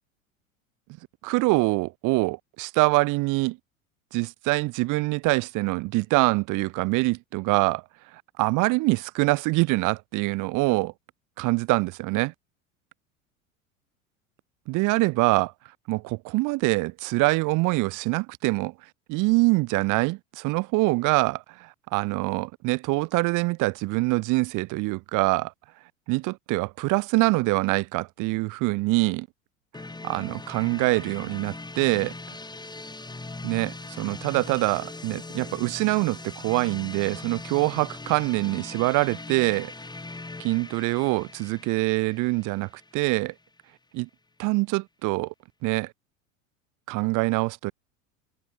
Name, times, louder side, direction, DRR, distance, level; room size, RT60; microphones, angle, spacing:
voice 1, 1.2-3.6 4.1-7.8 8.1-10.9 11.4-12.3 14.7-15.5 15.9-18.7 19.1-25.5 26.1-29.3 30.0-32.1 33.4-39.7 40.4-43.3 43.9-44.1 44.4-45.3 45.6-45.9 46.9-47.7, right 23 dB, 50° right, 2.6 m, -24 dB
sound 1, 29.7-43.5, left 2 dB, 10° left, 7.9 m, -40 dB
figure-of-eight pair, 80°, 41 cm